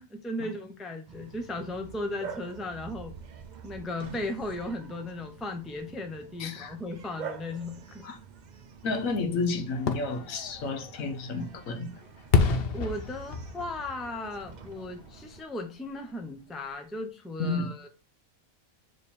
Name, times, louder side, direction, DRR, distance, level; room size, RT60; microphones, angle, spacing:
voice 1, 0.0-3.1 3.6-8.1 12.7-17.9, left 2 dB, ahead, 0.6 m, -36 dB
Bark, 1.1-15.4, right 6 dB, 60° right, 0.4 m, -47 dB
voice 2, 6.4-6.7 8.0-8.2 8.8-11.9 17.4-17.7, left 3 dB, 75° left, 1.3 m, -31 dB
Fireworks, 9.7-15.5 15.9-16.0, left 5 dB, 55° left, 0.8 m, -30 dB
7.0 x 3.3 x 4.3 m
omnidirectional pair, 1.4 m